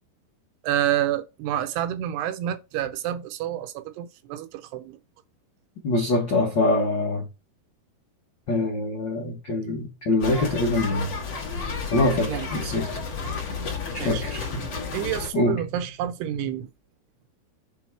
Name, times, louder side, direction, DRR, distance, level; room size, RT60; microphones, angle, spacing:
voice 1, 0.6-5.0 12.3-12.5 14.0-14.2 14.9-16.7, right 11 dB, 80° right, 2.9 m, -28 dB
voice 2, 5.8-7.2 8.5-11.1 11.9-12.9 14.0-14.6 15.3-15.6, left 2 dB, 70° left, 1.0 m, -24 dB
sound 1, 10.2-15.3, left 4 dB, 45° left, 3.3 m, -32 dB
8.2 x 3.9 x 4.7 m
omnidirectional pair, 4.8 m